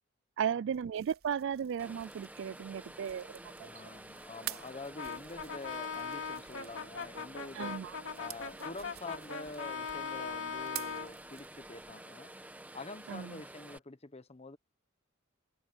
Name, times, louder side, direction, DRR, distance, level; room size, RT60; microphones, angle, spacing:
voice 1, 0.4-3.7 7.5-8.0 13.1-13.4, right 8 dB, 60° right, 0.3 m, -35 dB
sound 1, 0.7-11.9, right 13 dB, 90° right, 3.9 m, -50 dB
sound 2, 1.8-13.8, right 1 dB, 10° right, 1.5 m, -50 dB
voice 2, 3.6-7.8 8.2-12.3 12.7-14.6, left 3 dB, 30° left, 1.2 m, -46 dB
Brass instrument, 5.0-11.1, left 6 dB, 65° left, 2.7 m, -40 dB
head